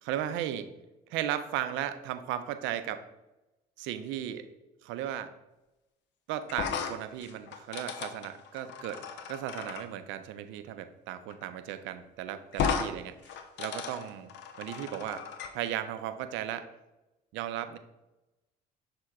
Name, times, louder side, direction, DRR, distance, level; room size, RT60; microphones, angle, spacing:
voice 1, 0.0-0.7 1.1-3.0 3.8-4.5 4.8-5.3 6.3-13.2 13.6-14.3 14.6-15.3 15.5-16.7 17.3-17.8, right 11 dB, 65° right, 11 dB, 0.4 m, -35 dB
sound 1, 6.5-9.8 11.3-11.4 11.7-11.8 12.5-12.9 13.2-15.5, left 7 dB, 60° left, 0.5 m, -35 dB
6.2 x 2.2 x 3.7 m, 0.97 s
hypercardioid pair, 55°, 21 cm